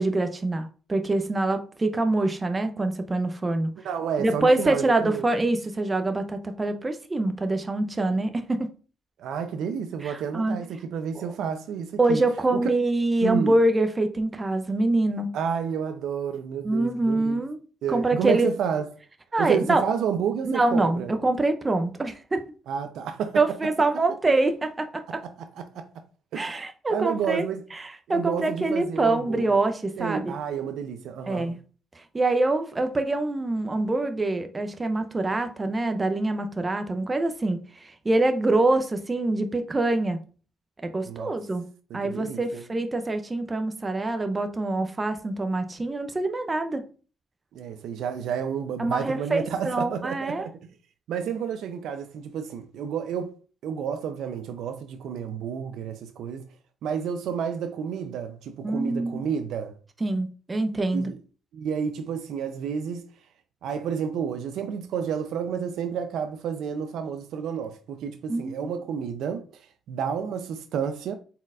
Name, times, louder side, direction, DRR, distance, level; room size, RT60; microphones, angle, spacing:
voice 1, 0.0-3.7 4.2-8.7 10.0-10.6 11.1-11.3 12.0-15.3 16.6-18.5 19.3-19.8 20.5-22.5 23.4-25.2 26.4-27.5 27.7-30.3 31.3-31.6 32.0-40.2 40.8-41.7 41.9-46.8 48.8-50.5 58.6-59.2 60.0-61.1 68.3-68.7, right 2 dB, 25° right, 0.5 m, -25 dB
voice 2, 3.8-5.2 9.2-12.2 12.5-12.6 13.2-13.6 15.3-17.4 17.8-18.9 19.4-21.1 22.7-23.4 25.2-25.9 26.3-26.6 26.9-27.6 28.1-29.4 30.0-31.5 41.1-41.3 41.9-42.6 47.5-50.5 51.1-53.3 53.6-56.4 56.8-59.8 60.9-61.2 61.5-63.1 63.6-71.1, right 7 dB, 80° right, 0.5 m, -30 dB
4.2 x 3.9 x 2.4 m
cardioid pair, 90°, 0 cm